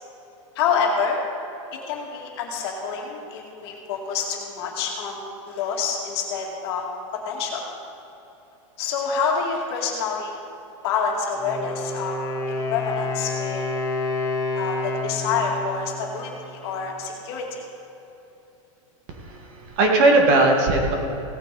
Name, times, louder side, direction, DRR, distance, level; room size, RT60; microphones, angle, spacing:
voice 1, 0.6-1.2 1.7-6.8 7.1-7.7 8.8-10.4 10.8-12.2 12.5-13.6 14.5-17.6, left 5 dB, 50° left, 0 dB, 2.2 m, -27 dB
Wind instrument woodwind instrument, 11.3-17.1, left 2 dB, 20° left, 1.3 m, -29 dB
voice 2, 19.1-20.9, right 2 dB, 40° right, 1 dB, 1.8 m, -19 dB
17.0 x 9.0 x 4.1 m, 2.9 s
supercardioid pair, 170°, 17 cm